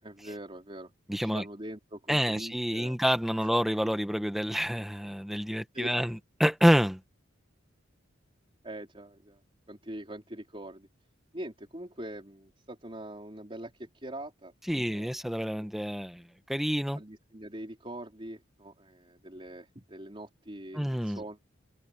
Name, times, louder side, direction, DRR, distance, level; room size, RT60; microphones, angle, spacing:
voice 1, 0.0-0.9 1.2-3.0 5.7-6.0 8.6-9.4 9.7-10.9 11.3-14.5 14.8-15.7 16.9-21.5, right 1 dB, 25° right, 4.4 m, -43 dB
voice 2, 1.1-1.4 2.1-7.0 14.7-16.2 16.5-17.0 20.7-21.2, equal, ahead, 1.3 m, -28 dB
head